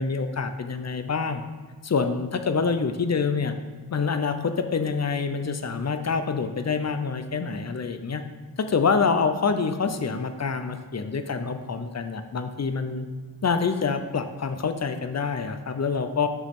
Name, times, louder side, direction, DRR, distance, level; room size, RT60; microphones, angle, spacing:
voice 1, 0.0-1.4 1.8-3.5 3.9-8.2 8.6-13.1 13.4-16.3, left 5 dB, 45° left, 8 dB, 0.7 m, -26 dB
7.1 x 6.5 x 3.7 m, 1.5 s
wide cardioid pair, 100°, 38 cm